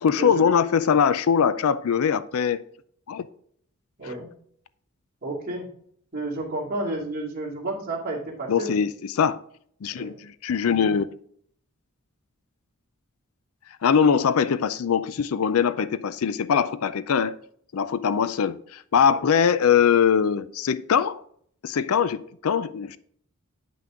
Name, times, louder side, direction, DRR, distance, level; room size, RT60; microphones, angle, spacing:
voice 1, 0.0-2.6 3.1-3.2 4.0-4.1 8.5-9.4 9.8-11.1 13.8-17.4 17.7-21.2 21.6-23.0, left 7 dB, 75° left, 0.4 m, -22 dB
voice 2, 4.0-4.3 5.2-5.7 6.1-8.7 9.9-10.2 19.1-19.2, right 2 dB, 45° right, 2.6 m, -31 dB
9.2 x 5.8 x 3.7 m
head